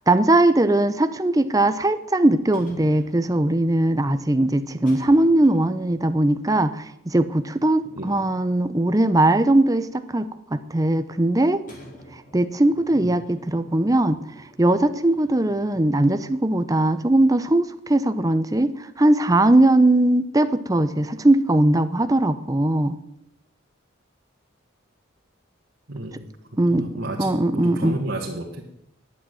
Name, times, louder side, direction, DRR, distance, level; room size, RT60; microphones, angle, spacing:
voice 1, 0.1-11.6 12.3-14.2 14.6-23.0 26.6-26.9 27.2-28.0, right 1 dB, 15° right, 11 dB, 0.6 m, -20 dB
sound 1, 2.5-3.8 4.9-6.1 6.5-6.6 7.7-9.0 9.3-10.2 11.7-16.6 16.9-17.0 17.4-17.5 17.9-18.4, equal, 40° left, 3.4 m, -48 dB
voice 2, 25.9-26.3 26.7-28.6, right 1 dB, 60° right, -2 dB, 1.8 m, -32 dB
11.0 x 8.8 x 9.3 m, 0.78 s
head